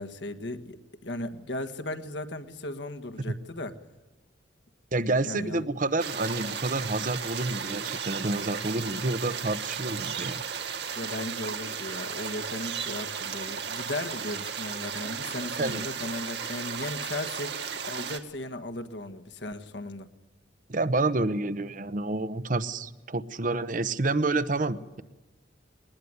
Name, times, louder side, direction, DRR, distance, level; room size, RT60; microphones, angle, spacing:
voice 1, 0.0-3.7 5.2-5.6 10.9-20.1, left 1 dB, 70° left, 8 dB, 1.6 m, -36 dB
voice 2, 4.9-10.4 15.6-15.8 20.7-25.0, right 2 dB, 45° right, 13 dB, 0.9 m, -29 dB
sound 1, 6.0-18.2, right 7 dB, 65° right, 2.0 m, -35 dB
20.5 x 20.0 x 9.7 m, 1.1 s
head